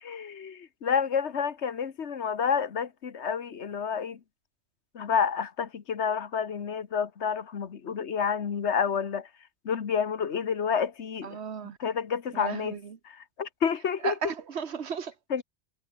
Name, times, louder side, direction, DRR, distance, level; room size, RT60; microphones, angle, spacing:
voice 1, 0.0-4.2 4.9-9.3 9.6-11.4 11.8-12.8 13.0-14.3 15.3-15.4, left 7 dB, 80° left, 1.6 m, -29 dB
voice 2, 11.2-11.8 12.3-13.0 14.0-15.1, right 6 dB, 70° right, 1.5 m, -34 dB
omnidirectional pair, 1.1 m